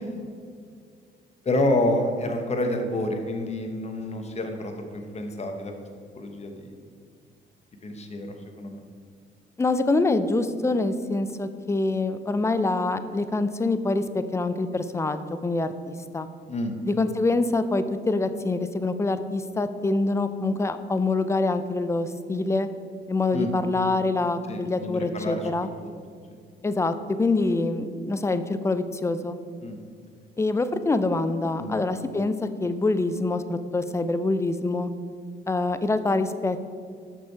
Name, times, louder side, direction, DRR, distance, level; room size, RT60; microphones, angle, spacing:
voice 1, 1.4-5.7 6.1-6.7 7.8-8.8 16.5-16.8 23.3-23.5 24.5-25.5 25.8-25.9 29.6-29.8 31.6-31.7, left 1 dB, 35° left, 4 dB, 1.1 m, -28 dB
voice 2, 9.6-14.0 14.3-16.3 16.8-22.7 23.1-25.7 26.6-29.4 30.4-34.9 35.5-36.7, left 2 dB, 15° left, 11 dB, 0.4 m, -25 dB
6.4 x 6.0 x 4.6 m, 2.2 s
cardioid pair, 90°, 20 cm